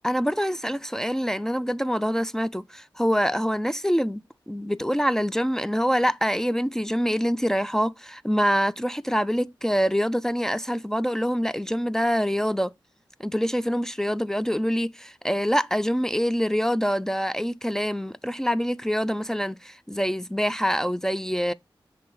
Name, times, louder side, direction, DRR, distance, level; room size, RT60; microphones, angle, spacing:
voice 1, 0.0-12.7 13.2-21.5, equal, 5° left, 0.3 m, -25 dB
6.0 x 3.5 x 4.6 m
cardioid pair, 50°, 9 cm